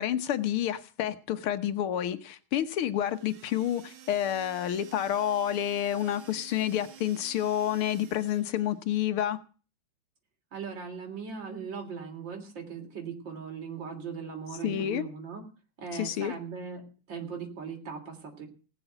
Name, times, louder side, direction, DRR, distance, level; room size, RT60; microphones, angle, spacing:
voice 1, 0.0-9.4 14.6-15.0 15.9-16.3, left 11 dB, 90° left, 10 dB, 2.0 m, -29 dB
sound 1, 2.9-8.8, right 9 dB, 75° right, 2.4 m, -51 dB
voice 2, 10.5-15.4 15.8-16.8 17.1-18.5, right 6 dB, 60° right, 2 dB, 4.1 m, -39 dB
20.0 x 7.0 x 8.0 m, 0.36 s
omnidirectional pair, 2.3 m